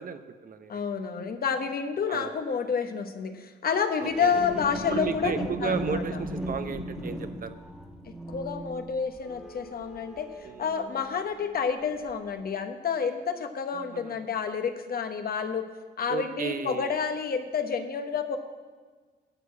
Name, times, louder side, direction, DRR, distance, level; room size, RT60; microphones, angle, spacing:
voice 1, 0.0-0.8 2.1-2.3 4.0-4.4 4.9-7.6 10.4-10.7 13.8-14.2 16.1-17.0, right 6 dB, 45° right, 10 dB, 0.7 m, -34 dB
voice 2, 0.7-6.0 8.3-10.3 10.6-15.7 16.0-18.4, left 6 dB, 50° left, 7 dB, 1.0 m, -29 dB
sound 1, 4.0-11.5 12.0-12.1, right 1 dB, 5° right, 1.6 m, -37 dB
11.5 x 4.7 x 8.2 m, 1.4 s
cardioid pair, 90°, 20 cm